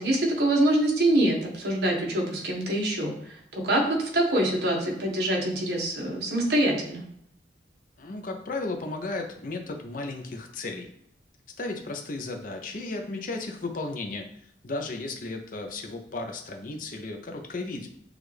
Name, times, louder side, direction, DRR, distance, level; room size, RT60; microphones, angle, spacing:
voice 1, 0.0-3.2 3.5-7.0, right 1 dB, 65° right, -1 dB, 1.2 m, -25 dB
voice 2, 8.0-10.9 11.6-14.3 14.6-17.9, left 2 dB, 50° left, 4 dB, 0.6 m, -34 dB
6.3 x 2.5 x 3.3 m, 0.68 s
head